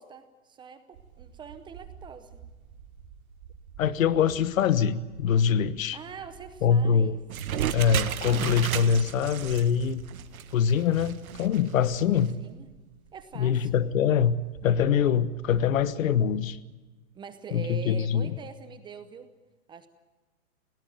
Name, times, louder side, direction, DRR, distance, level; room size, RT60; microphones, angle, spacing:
voice 1, 0.0-2.4 5.9-7.2 12.1-12.7 13.1-13.7 17.2-19.3 19.7-19.9, right 6 dB, 10° right, 11 dB, 0.7 m, -44 dB
sound 1, 0.9-16.6, right 7 dB, 45° right, 3.9 m, -51 dB
voice 2, 3.8-6.0 6.6-7.2 7.7-10.0 10.5-12.3 13.3-14.4 14.6-16.6 17.5-18.4, left 7 dB, 65° left, 16 dB, 1.3 m, -24 dB
sound 2, 7.3-12.3, right 9 dB, 75° right, 1.6 m, -33 dB
21.5 x 18.5 x 9.0 m, 1.2 s
hypercardioid pair, 145°, 43 cm